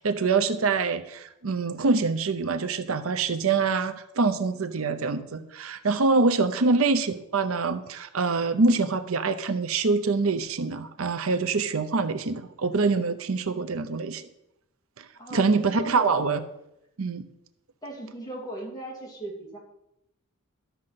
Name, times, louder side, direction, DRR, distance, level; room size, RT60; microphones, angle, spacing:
voice 1, 0.0-14.2 15.0-15.1 15.3-16.4 17.0-17.2, right 4 dB, 80° right, 11 dB, 0.7 m, -25 dB
voice 2, 15.2-16.3 17.8-19.6, right 1 dB, 20° left, -2 dB, 2.8 m, -38 dB
12.5 x 6.5 x 5.8 m, 0.85 s
head